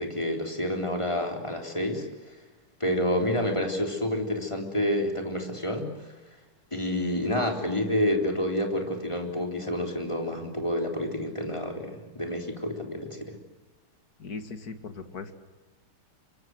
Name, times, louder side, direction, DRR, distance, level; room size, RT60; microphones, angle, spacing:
voice 1, 0.0-2.4 2.8-6.1 6.7-13.4, left 1 dB, 15° left, 3 dB, 3.7 m, -29 dB
voice 2, 14.2-15.4, left 4 dB, 45° left, 9 dB, 2.3 m, -39 dB
27.0 x 24.0 x 7.8 m, 1.2 s
omnidirectional pair, 2.3 m